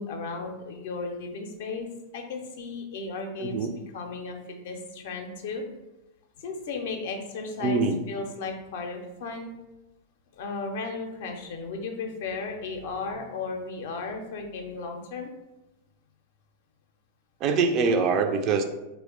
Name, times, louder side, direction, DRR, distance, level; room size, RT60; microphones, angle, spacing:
voice 1, 0.0-1.9 2.1-3.6 3.9-5.6 6.4-9.5 10.3-15.3, left 3 dB, 55° left, 3 dB, 0.5 m, -35 dB
voice 2, 3.4-3.7 7.6-8.0 17.4-18.6, right 4 dB, 35° right, 6 dB, 0.3 m, -24 dB
2.9 x 2.0 x 3.7 m, 1.0 s
figure-of-eight pair, 90°, 0 cm